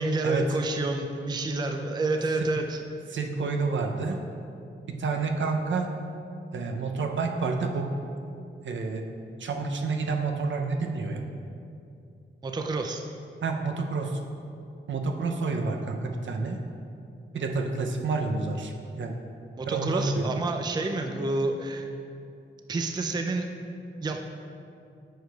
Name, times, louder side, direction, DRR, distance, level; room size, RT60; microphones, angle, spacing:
voice 1, 0.0-2.8 12.4-13.0 19.6-21.9 22.7-23.5 24.0-24.2, right 2 dB, 20° right, 4 dB, 0.3 m, -29 dB
voice 2, 3.1-4.2 4.9-5.9 6.5-7.9 8.6-9.0 9.4-11.2 13.4-14.2 14.9-16.6 17.3-19.2 19.7-20.3, right 4 dB, 70° right, 3 dB, 0.6 m, -29 dB
8.9 x 4.7 x 2.3 m, 2.5 s
wide cardioid pair, 85°, 21 cm